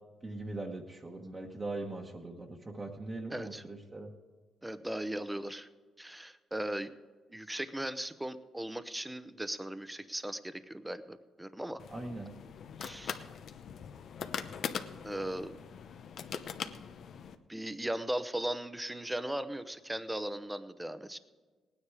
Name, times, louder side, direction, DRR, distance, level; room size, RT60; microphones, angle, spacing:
voice 1, 0.2-4.1 11.9-12.3, right 2 dB, 25° right, 0 dB, 1.3 m, -40 dB
voice 2, 3.3-3.6 4.6-5.7 6.0-6.9 7.3-11.8 12.8-13.2 15.0-15.5 17.5-21.2, right 1 dB, 10° right, 12 dB, 0.8 m, -38 dB
sound 1, 11.8-17.4, left 7 dB, 65° left, 0.8 m, -41 dB
18.0 x 9.8 x 4.8 m, 1.4 s
cardioid pair, 90°, 0 cm